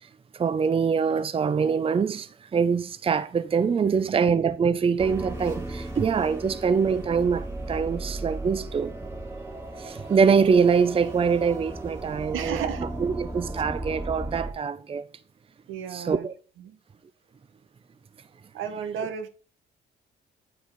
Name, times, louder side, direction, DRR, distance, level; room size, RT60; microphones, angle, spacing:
voice 1, 0.4-8.9 9.8-12.7 13.0-15.0 15.9-16.3, right 6 dB, 30° right, 0.5 m, -24 dB
voice 2, 3.8-4.3 12.3-12.9 15.7-16.3 16.6-16.8 18.5-19.3, right 8 dB, 90° right, 1.2 m, -34 dB
sound 1, 5.0-14.5, right 2 dB, 10° right, 2.3 m, -36 dB
8.3 x 4.8 x 3.8 m
cardioid pair, 90°, 20 cm